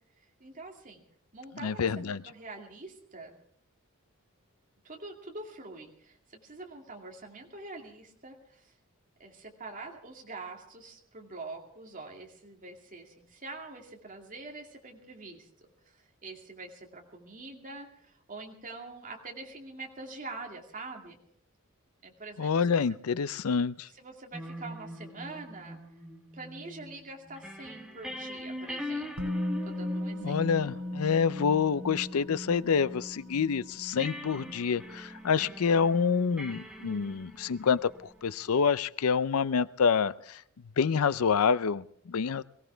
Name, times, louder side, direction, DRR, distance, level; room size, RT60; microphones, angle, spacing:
voice 1, 0.4-1.0 1.3-3.4 4.8-8.7 9.2-15.5 16.0-21.2 22.0-22.8 24.0-25.8 26.3-29.3 29.6-30.4, right 3 dB, 40° right, 0 dB, 2.4 m, -45 dB
voice 2, 1.6-2.2 22.4-23.9 30.2-37.9 38.2-40.4 40.8-42.4, left 6 dB, 90° left, 17 dB, 0.5 m, -27 dB
sound 1, 24.3-33.4 34.0-38.2, left 1 dB, 5° right, 1.2 m, -43 dB
Musical instrument, 29.2-37.1 37.4-37.5, left 1 dB, 90° right, 4.4 m, -38 dB
22.0 x 16.0 x 3.4 m, 0.66 s
head